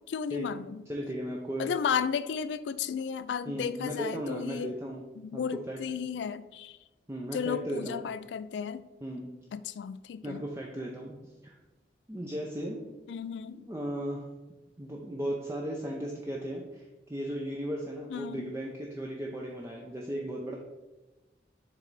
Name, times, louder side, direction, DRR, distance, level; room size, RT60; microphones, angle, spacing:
voice 1, 0.0-0.9 1.6-4.7 5.2-6.8 7.3-8.9 9.5-10.4 13.1-13.7 18.1-18.5, left 7 dB, 80° left, 14 dB, 0.3 m, -34 dB
voice 2, 0.9-1.7 3.5-5.0 5.3-5.4 5.7-5.8 7.1-8.0 9.0-9.3 10.2-11.2 11.4-11.5 12.1-12.8 13.5-14.2 14.8-20.5, right 1 dB, 15° right, -2 dB, 0.5 m, -36 dB
7.4 x 3.3 x 4.0 m, 1.1 s
head